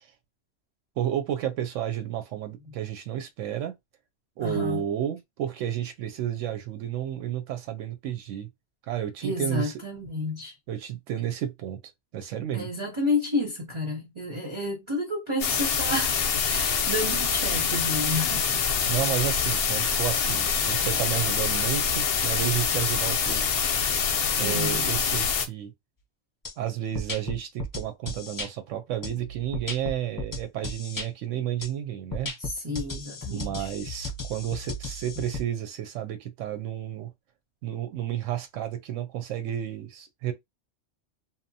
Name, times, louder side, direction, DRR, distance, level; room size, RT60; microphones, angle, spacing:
voice 1, 1.0-3.7 4.4-8.5 8.8-9.8 10.7-11.8 12.1-12.7 18.9-23.4 24.4-25.7 26.6-32.3 33.3-37.1 37.6-40.3, right 11 dB, 90° right, 0.9 m, -31 dB
voice 2, 4.4-4.8 9.2-10.5 12.5-16.1 16.5-18.7 24.4-24.9 32.4-33.7, left 2 dB, 35° right, 0.6 m, -30 dB
sound 1, 15.4-25.5, left 6 dB, 65° left, 0.7 m, -25 dB
sound 2, 26.4-26.5 26.9-28.5 29.0-31.1 31.6-31.7 32.1-35.4, left 2 dB, 20° left, 0.6 m, -35 dB
2.8 x 2.1 x 2.6 m
omnidirectional pair, 1.3 m